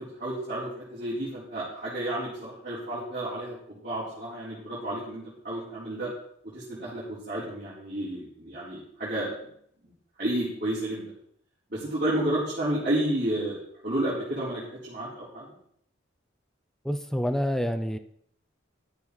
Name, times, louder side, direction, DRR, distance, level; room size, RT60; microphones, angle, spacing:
voice 1, 0.0-6.1 6.5-9.3 9.8-9.9 10.2-11.1 11.7-13.6 13.8-15.5, right 1 dB, 45° right, -9 dB, 4.2 m, -31 dB
voice 2, 16.8-18.0, equal, ahead, 8 dB, 0.6 m, -27 dB
12.0 x 7.0 x 6.3 m, 0.67 s
head